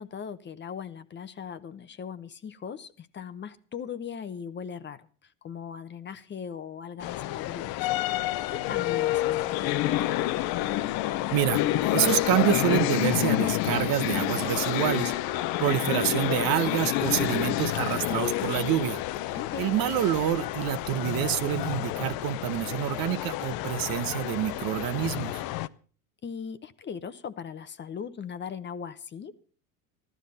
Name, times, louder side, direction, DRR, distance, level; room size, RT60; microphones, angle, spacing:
voice 1, 0.0-5.1 5.4-10.1 19.4-19.7 26.2-29.3, left 7 dB, 25° left, 13 dB, 0.9 m, -39 dB
sound 1, 7.0-25.7, left 15 dB, 55° left, 0.8 m, -29 dB
voice 2, 11.3-11.6 11.9-15.1 15.6-19.0 19.6-25.4, right 12 dB, 50° right, 14 dB, 1.1 m, -27 dB
14.5 x 12.5 x 5.5 m, 0.41 s
supercardioid pair, 130°, 44 cm